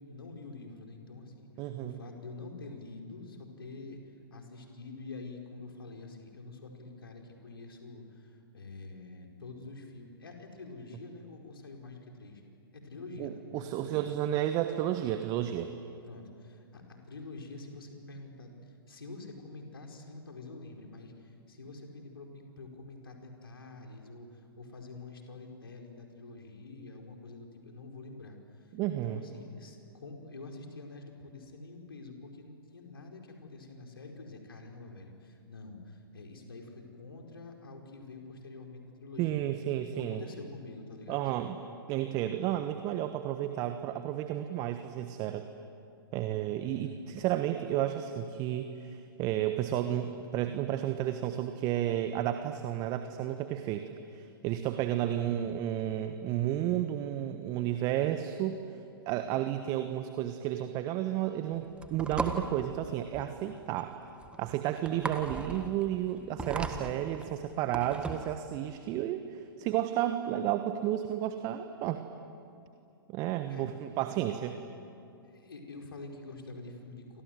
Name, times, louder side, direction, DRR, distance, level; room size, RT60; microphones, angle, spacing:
voice 1, 0.0-4.0 4.3-12.4 12.7-14.1 16.0-28.7 29.0-39.5 39.8-41.5 46.6-47.0 55.1-55.5 73.4-73.7 75.2-77.2, left 3 dB, 70° left, 2 dB, 4.9 m, -47 dB
voice 2, 1.6-2.0 13.2-15.7 28.7-29.2 39.2-40.2 41.1-41.6 41.9-45.5 46.1-53.8 54.1-58.6 59.1-63.9 64.4-72.0 73.1-74.6, right 12 dB, 30° right, 8 dB, 1.3 m, -32 dB
sound 1, 61.5-68.4, right 3 dB, 10° right, 1.6 m, -38 dB
29.0 x 25.5 x 7.8 m, 2.6 s
figure-of-eight pair, 110°, 13 cm